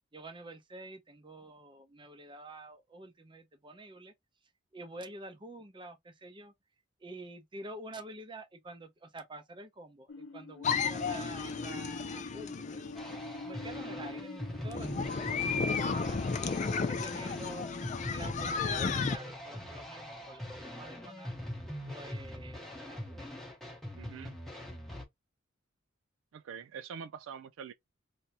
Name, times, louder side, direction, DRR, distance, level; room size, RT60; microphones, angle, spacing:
voice 1, 0.1-4.1 4.7-6.5 7.0-12.8 13.4-16.2 16.9-21.3 21.9-23.3, right 2 dB, 25° right, 0.6 m, -48 dB
sound 1, 10.1-16.4, left 2 dB, 70° left, 0.7 m, -43 dB
sound 2, 10.6-13.2 14.7-19.2, left 5 dB, 35° left, 0.4 m, -33 dB
sound 3, 13.0-25.0, left 1 dB, ahead, 0.9 m, -42 dB
voice 2, 24.0-24.4 26.3-27.7, right 7 dB, 70° right, 0.3 m, -44 dB
3.3 x 2.7 x 2.8 m
head